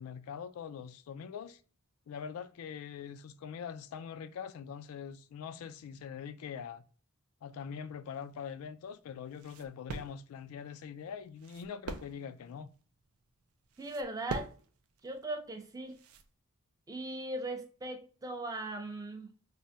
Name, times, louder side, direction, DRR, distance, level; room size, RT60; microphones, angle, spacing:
voice 1, 0.0-1.6 2.1-6.8 7.4-12.7, left 7 dB, 75° left, 0.3 m, -43 dB
sound 1, 8.1-16.3, right 5 dB, 80° right, 0.4 m, -46 dB
voice 2, 13.8-14.5 15.0-16.0 16.9-19.3, right 1 dB, 15° right, 0.4 m, -39 dB
3.3 x 2.1 x 2.6 m
head